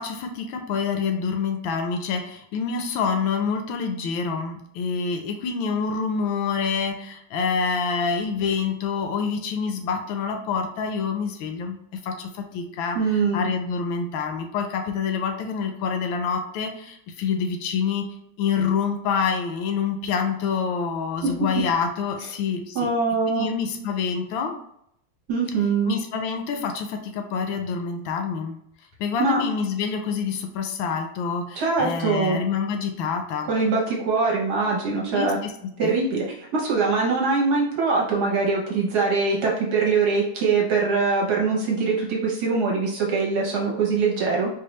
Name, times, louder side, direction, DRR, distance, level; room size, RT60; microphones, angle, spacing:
voice 1, 0.0-11.8 12.0-18.0 18.4-22.9 23.3-24.5 25.9-28.6 29.0-33.5 35.1-35.5 35.8-35.9, left 5 dB, 80° left, 5 dB, 1.3 m, -27 dB
voice 2, 12.9-13.5 21.2-21.3 22.7-23.5 25.3-25.9 29.2-29.4 31.5-32.4 33.4-35.4 35.8-44.5, right 4 dB, 60° right, -3 dB, 1.2 m, -23 dB
4.6 x 2.3 x 3.0 m, 0.72 s
omnidirectional pair, 2.2 m